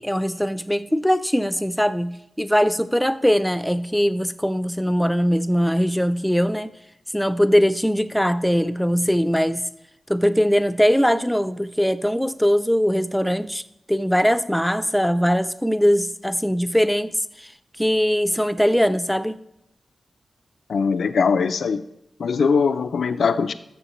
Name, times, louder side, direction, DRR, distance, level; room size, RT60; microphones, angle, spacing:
voice 1, 0.0-6.7 7.1-9.6 10.1-13.6 13.9-17.5 17.8-19.4, equal, ahead, 13 dB, 0.4 m, -21 dB
voice 2, 20.7-21.8 22.2-23.5, left 5 dB, 85° left, 11 dB, 0.4 m, -21 dB
13.0 x 6.9 x 3.1 m, 0.83 s
wide cardioid pair, 135°, 0 cm